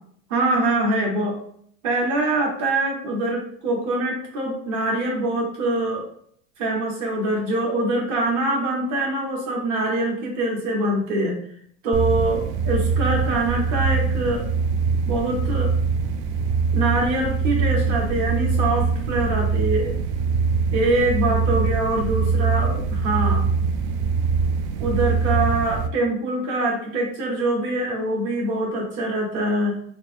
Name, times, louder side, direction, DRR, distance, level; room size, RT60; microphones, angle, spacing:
voice 1, 0.3-1.4 1.8-6.1 6.6-11.4 11.8-14.4 15.1-15.7 16.7-19.9 20.7-23.4 24.8-29.8, right 2 dB, 60° right, -2 dB, 1.4 m, -24 dB
sound 1, 11.9-25.9, right 5 dB, 80° right, 0.5 m, -23 dB
4.2 x 2.1 x 3.3 m, 0.62 s
supercardioid pair, 95°, 33 cm